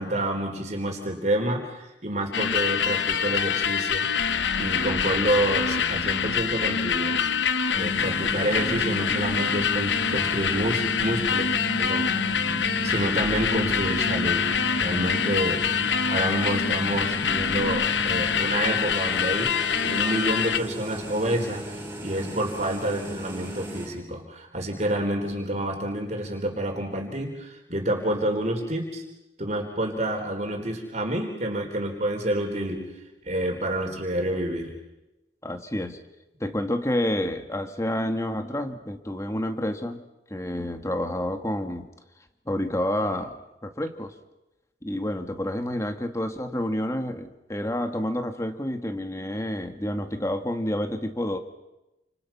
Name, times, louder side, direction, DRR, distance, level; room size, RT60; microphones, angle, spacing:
voice 1, 0.0-4.1 4.6-7.3 7.7-11.5 11.8-12.1 12.8-14.5 14.7-19.5 19.8-29.0 29.4-32.8 33.2-34.7, right 1 dB, 40° right, 2 dB, 4.1 m, -28 dB
sound 1, 2.3-20.6, left 7 dB, 80° left, 1.0 m, -25 dB
sound 2, 7.7-23.9, equal, 10° right, 7.6 m, -35 dB
voice 2, 35.4-36.0 36.4-40.0 40.3-41.9 42.5-44.1 44.8-51.4, left 1 dB, 15° left, 7 dB, 1.8 m, -29 dB
29.5 x 28.0 x 5.9 m, 0.97 s
head